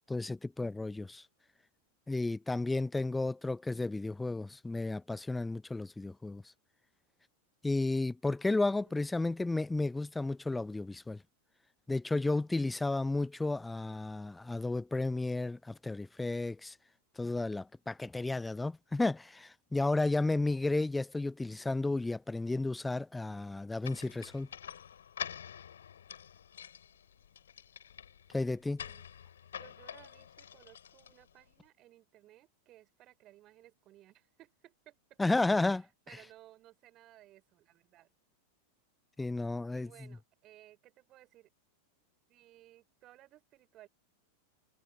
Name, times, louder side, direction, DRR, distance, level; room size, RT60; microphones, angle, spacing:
voice 1, 0.1-1.2 2.1-6.4 7.6-11.2 11.9-16.7 17.2-24.5 28.3-28.8 35.2-35.8 39.2-39.9, left 2 dB, 10° left, 0.6 m, -32 dB
voice 2, 8.8-9.4 28.8-29.1 29.6-35.2 35.5-38.1 39.7-41.5 42.3-43.9, right 15 dB, 35° right, 5.9 m, -60 dB
sound 1, 23.8-31.5, left 9 dB, 65° left, 7.9 m, -47 dB
figure-of-eight pair, 90°, 0 cm